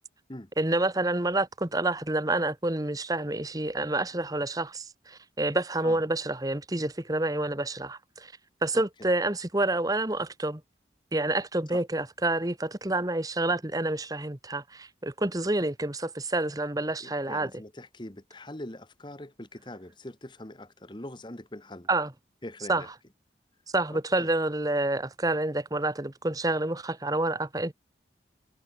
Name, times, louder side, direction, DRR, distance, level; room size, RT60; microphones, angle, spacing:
voice 1, 0.6-8.3 8.6-10.6 11.1-17.5 21.9-22.1 22.7-22.8 23.7-27.7, right 2 dB, 20° right, 1.4 m, -28 dB
voice 2, 8.7-9.1 11.7-11.8 17.0-21.9 22.4-22.9 23.9-24.3, left 1 dB, 25° left, 1.5 m, -43 dB
head